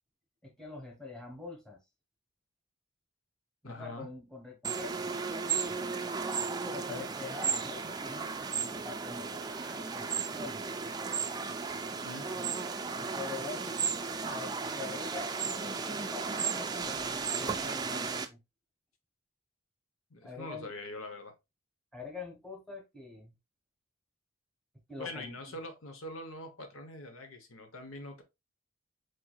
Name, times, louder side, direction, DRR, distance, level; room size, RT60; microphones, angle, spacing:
voice 1, 0.4-1.8 3.6-5.1 6.5-10.6 12.9-13.8 14.3-18.4 20.2-20.7 21.9-23.3 24.9-25.5, left 4 dB, 5° left, 1.1 m, -45 dB
voice 2, 3.6-4.1 6.9-7.1 12.0-12.3 20.1-21.3 25.0-28.2, left 1 dB, 80° left, 1.0 m, -43 dB
sound 1, 4.6-18.3, right 5 dB, 20° right, 0.4 m, -35 dB
4.7 x 4.5 x 2.3 m
head